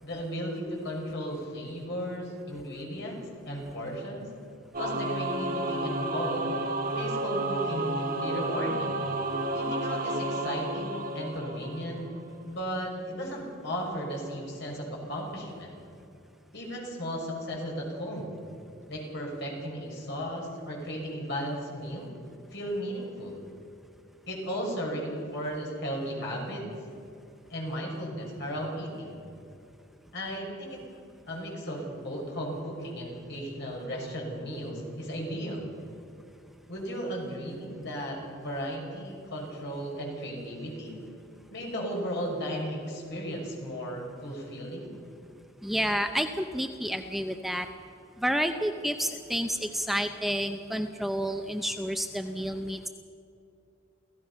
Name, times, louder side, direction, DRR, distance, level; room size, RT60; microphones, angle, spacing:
voice 1, 0.0-4.3 4.8-6.5 6.9-9.0 9.5-12.1 12.4-15.7 16.5-18.4 18.9-22.1 22.5-23.4 24.3-26.7 27.5-29.2 30.1-30.8 31.3-35.7 36.7-40.9 41.5-44.9, equal, 60° left, -1 dB, 6.1 m, -35 dB
Singing / Musical instrument, 4.7-12.2, right 1 dB, 45° right, 1.3 m, -31 dB
voice 2, 45.6-47.7 48.2-52.9, equal, ahead, 6 dB, 0.6 m, -30 dB
28.5 x 16.0 x 5.6 m, 2.6 s
head